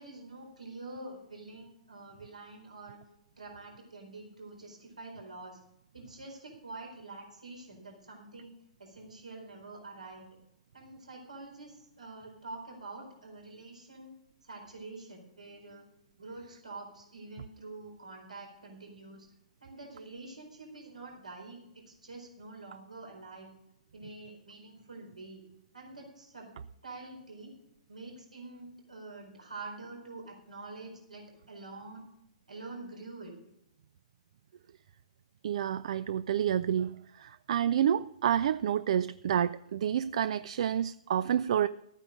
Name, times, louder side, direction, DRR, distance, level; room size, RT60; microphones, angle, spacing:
voice 1, 0.0-3.0 3.4-5.6 5.9-8.5 8.8-10.2 10.7-14.1 14.4-15.8 16.2-19.3 19.6-23.5 23.9-25.4 25.7-26.6 26.8-27.6 27.9-32.0 32.5-33.4, right 3 dB, 85° right, 1 dB, 4.3 m, -46 dB
voice 2, 35.4-41.7, right 9 dB, 60° right, 16 dB, 0.4 m, -29 dB
13.5 x 9.1 x 5.1 m, 0.78 s
figure-of-eight pair, 120°, 4 cm